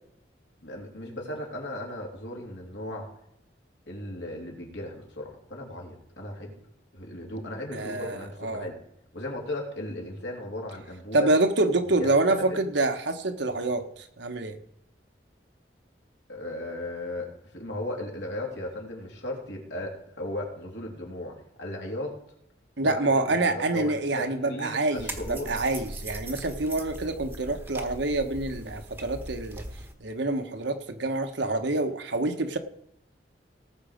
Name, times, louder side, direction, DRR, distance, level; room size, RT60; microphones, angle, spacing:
voice 1, 0.6-3.1 3.9-6.5 6.9-8.7 9.1-11.3 12.0-12.6 16.3-22.2 22.8-25.5, left 1 dB, 75° left, 0 dB, 3.2 m, -36 dB
voice 2, 7.7-8.7 11.1-14.6 22.8-29.6 30.0-32.6, right 2 dB, 75° right, 6 dB, 1.2 m, -27 dB
sound 1, 24.9-29.9, right 1 dB, 10° right, 1.1 m, -40 dB
18.5 x 6.5 x 5.1 m, 0.75 s
head